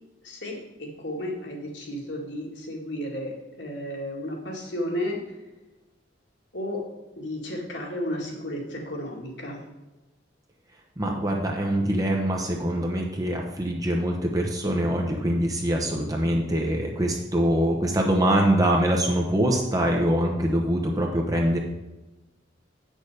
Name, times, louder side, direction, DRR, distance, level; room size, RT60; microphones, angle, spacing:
voice 1, 0.2-5.4 6.5-6.8 7.2-9.6, left 1 dB, 65° left, -1 dB, 2.2 m, -33 dB
voice 2, 11.0-21.6, right 1 dB, 20° right, 0 dB, 0.8 m, -24 dB
8.1 x 6.4 x 5.0 m, 1.1 s
head